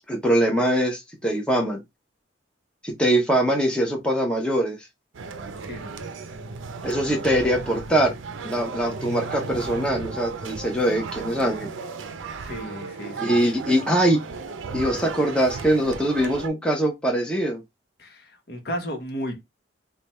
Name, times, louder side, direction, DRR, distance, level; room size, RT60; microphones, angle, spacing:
voice 1, 0.1-1.8 2.8-4.8 6.8-8.2 8.4-11.7 13.2-14.2 14.7-17.6, right 1 dB, 5° left, 0.7 m, -22 dB
sound 1, 5.1-16.5, right 4 dB, 85° right, 0.5 m, -35 dB
voice 2, 5.6-6.0 12.4-13.4 18.0-19.4, equal, 55° left, 1.0 m, -34 dB
3.2 x 2.3 x 4.2 m
head